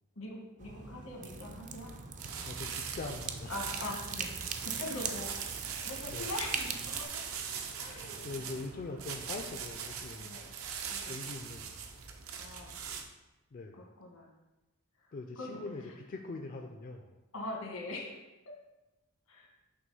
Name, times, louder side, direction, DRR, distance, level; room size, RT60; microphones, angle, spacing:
voice 1, 0.1-1.9 3.5-7.2 7.8-8.5 10.2-10.5 10.8-11.2 12.4-12.8 13.8-14.3 15.0-15.6 17.3-18.6 19.3-19.5, left 2 dB, 85° left, 0 dB, 1.4 m, -43 dB
sound 1, 0.6-7.0, right 6 dB, 35° right, 0.4 m, -41 dB
sound 2, 2.2-13.0, right 6 dB, 75° right, 0.6 m, -41 dB
voice 2, 2.4-3.6 6.1-6.3 8.2-10.4 11.1-11.7 13.5-13.8 15.1-15.8 16.1-17.2, left 3 dB, 40° left, 3 dB, 0.4 m, -42 dB
6.2 x 3.0 x 5.4 m, 1.0 s
head